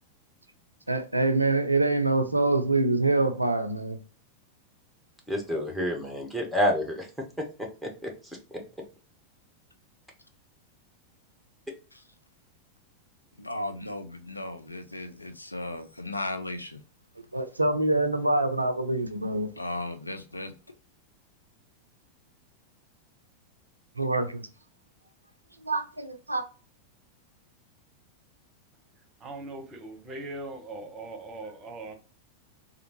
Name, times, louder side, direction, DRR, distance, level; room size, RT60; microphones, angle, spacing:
voice 1, 0.9-4.0 17.3-19.5 24.0-24.5 25.6-26.4, right 2 dB, 85° right, 0.4 m, -25 dB
voice 2, 5.3-7.1 7.4-8.1, equal, ahead, 1.0 m, -29 dB
voice 3, 13.4-16.8 19.5-20.5, left 1 dB, 85° left, 0.4 m, -36 dB
voice 4, 29.2-31.9, right 2 dB, 25° right, 1.0 m, -40 dB
3.4 x 2.4 x 2.9 m
figure-of-eight pair, 90°, 0 cm